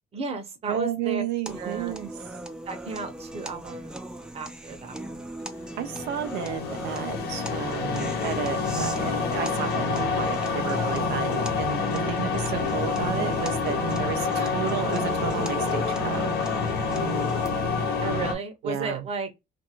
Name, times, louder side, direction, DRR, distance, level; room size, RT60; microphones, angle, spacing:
voice 1, 0.1-1.2 1.6-2.0 2.7-4.0 4.3-5.4 12.5-12.9 18.0-19.3, right 4 dB, 35° right, 0.8 m, -34 dB
voice 2, 0.7-2.1 5.8-16.3 18.6-19.1, right 9 dB, 85° right, 0.5 m, -32 dB
sound 1, 1.5-17.5, right 1 dB, 5° right, 0.4 m, -39 dB
sound 2, 5.7-18.3, left 4 dB, 70° left, 0.9 m, -27 dB
2.5 x 2.5 x 2.8 m
cardioid pair, 110°, 17 cm